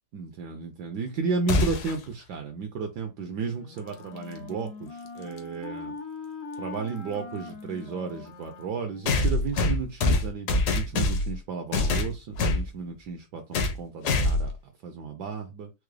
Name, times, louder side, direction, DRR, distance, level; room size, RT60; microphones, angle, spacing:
voice 1, 0.1-6.0 6.6-15.7, right 5 dB, 70° right, 1.0 m, -33 dB
sound 1, 1.5-2.0 4.2-4.3 5.4-5.5 9.1-11.4 11.7-12.7 13.5-13.8 14.0-14.5, left 2 dB, 65° left, 1.2 m, -24 dB
Wind instrument woodwind instrument, 3.3-9.5, left 4 dB, 90° left, 0.6 m, -42 dB
4.7 x 2.0 x 3.1 m
omnidirectional pair, 2.1 m